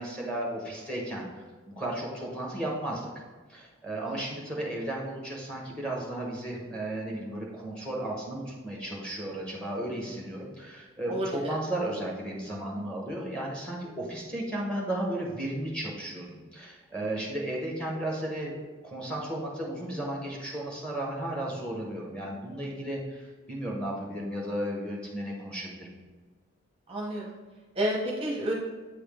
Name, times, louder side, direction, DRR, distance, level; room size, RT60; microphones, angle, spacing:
voice 1, 0.0-1.4 1.8-3.1 3.5-25.9, right 1 dB, 5° left, -2 dB, 1.0 m, -34 dB
voice 2, 11.1-11.5 26.9-27.3 27.8-28.5, right 1 dB, 25° right, -3 dB, 0.7 m, -30 dB
8.2 x 3.5 x 3.5 m, 1.3 s
head